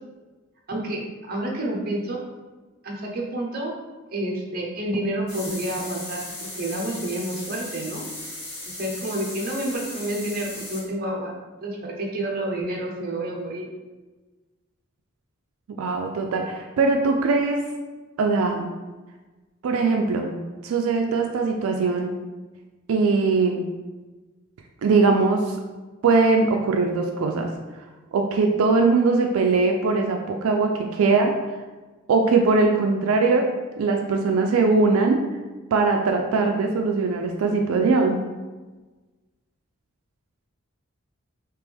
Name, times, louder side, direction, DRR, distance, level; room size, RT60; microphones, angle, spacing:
voice 1, 0.7-2.2 2.8-3.7 4.1-8.1 8.7-11.3 11.6-13.7, right 1 dB, 45° right, -1 dB, 0.7 m, -29 dB
sound 1, 5.3-10.8, left 2 dB, 80° left, 1.5 m, -37 dB
voice 2, 15.8-17.7 18.2-18.7 19.6-22.1 22.9-23.6 24.8-25.6 26.0-27.5 28.1-31.4 32.1-33.5 33.8-35.2 35.7-38.3, right 3 dB, 85° right, 3 dB, 0.4 m, -21 dB
3.4 x 2.9 x 3.4 m, 1.2 s
head